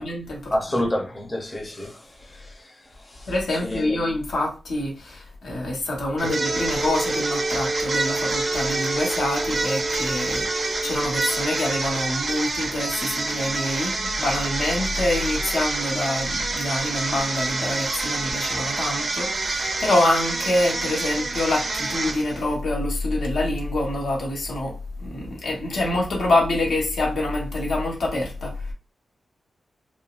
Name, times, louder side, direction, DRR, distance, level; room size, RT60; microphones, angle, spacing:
voice 1, 0.0-0.8 3.3-28.5, left 1 dB, 80° left, 1.1 m, -26 dB
voice 2, 0.5-2.6 3.1-3.3 3.6-4.0 6.2-6.3, left 1 dB, 20° left, 0.7 m, -29 dB
Brass instrument, 6.1-12.1, right 1 dB, 90° right, 1.1 m, -30 dB
sound 1, 6.2-22.5, right 3 dB, 40° right, 0.5 m, -28 dB
3.7 x 2.2 x 2.4 m
wide cardioid pair, 165°, 0 cm